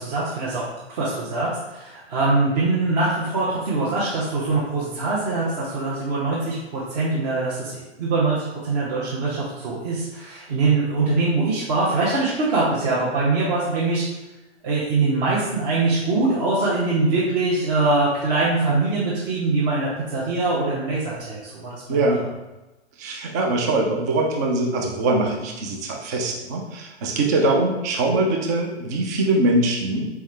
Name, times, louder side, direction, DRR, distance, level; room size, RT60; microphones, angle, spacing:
voice 1, 0.0-14.0 14.6-22.3, right 3 dB, 35° right, -7 dB, 1.0 m, -23 dB
voice 2, 21.9-22.2 23.0-30.2, right 2 dB, 15° right, 1 dB, 0.3 m, -22 dB
4.5 x 3.5 x 3.2 m, 1.1 s
figure-of-eight pair, 115°, 34 cm